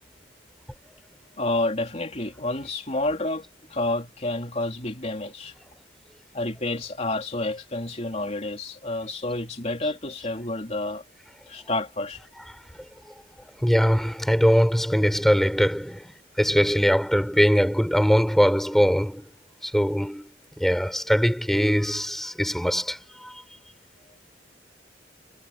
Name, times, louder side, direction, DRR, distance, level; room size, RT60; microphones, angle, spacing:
voice 1, 1.4-3.5 3.7-5.5 6.3-11.0 11.5-12.2, left 2 dB, 40° left, 3.6 m, -29 dB
voice 2, 13.6-16.1 16.4-19.3 19.6-20.3 20.6-23.4, equal, ahead, 5.2 m, -22 dB
head